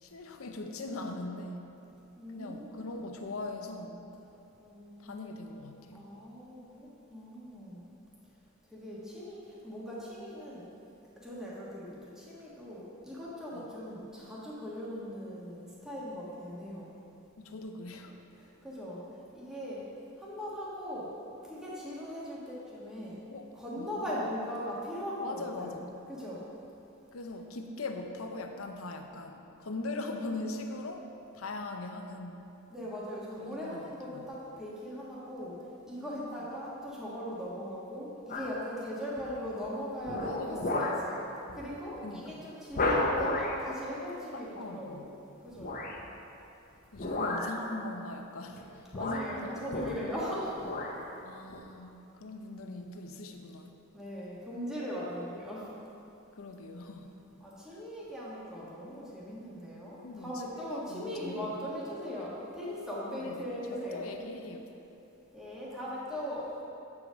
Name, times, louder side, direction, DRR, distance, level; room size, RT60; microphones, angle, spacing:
voice 1, 0.0-1.6 2.3-4.0 5.0-6.0 17.4-18.1 23.3-23.5 23.8-24.0 25.2-25.8 27.1-31.1 31.3-32.5 33.4-33.8 35.9-36.4 40.2-40.7 42.0-42.4 44.3-45.0 46.9-48.6 49.0-50.1 51.2-53.7 56.4-57.1 60.0-61.5 63.0-64.6, left 2 dB, 85° left, 4 dB, 0.7 m, -41 dB
voice 2, 2.2-3.2 4.6-7.8 8.7-10.7 11.2-17.0 18.4-19.1 19.3-19.9 20.2-21.1 21.4-23.2 23.5-25.8 26.1-26.5 32.7-35.5 35.9-45.7 48.9-50.7 53.9-55.7 57.4-64.1 65.3-66.6, equal, 5° right, -8 dB, 1.3 m, -40 dB
sound 1, 38.3-38.6 39.2-39.5 40.0-41.1 41.5-41.7 42.0-42.1 42.7-43.6 45.6-46.0 46.9-47.6 48.5-48.6 48.9-50.3 50.6-51.0 51.5-51.6, left 2 dB, 40° left, 0.8 m, -32 dB
8.4 x 4.9 x 6.2 m, 2.8 s
head